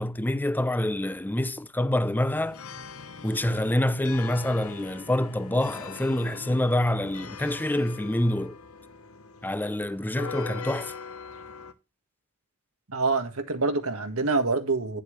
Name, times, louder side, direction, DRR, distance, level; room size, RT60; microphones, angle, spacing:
voice 1, 0.0-2.6 3.2-8.6 9.4-10.9, left 1 dB, 10° left, 0.5 m, -26 dB
sound 1, 2.3-11.7, left 5 dB, 80° left, 1.1 m, -42 dB
voice 2, 12.9-15.0, right 3 dB, 85° right, 1.6 m, -26 dB
9.8 x 7.5 x 3.1 m
head